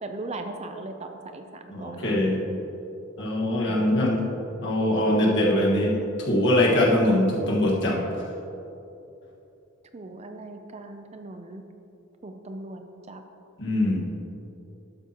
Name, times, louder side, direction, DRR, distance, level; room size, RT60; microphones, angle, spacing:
voice 1, 0.0-2.7 3.6-4.6 9.9-11.6 12.2-12.8 13.1-13.2, right 2 dB, 30° right, 6 dB, 0.5 m, -39 dB
voice 2, 1.7-2.4 3.2-4.2 4.6-8.0 13.6-14.0, left 1 dB, 60° left, -3 dB, 1.6 m, -22 dB
12.0 x 8.2 x 2.9 m, 2.8 s
head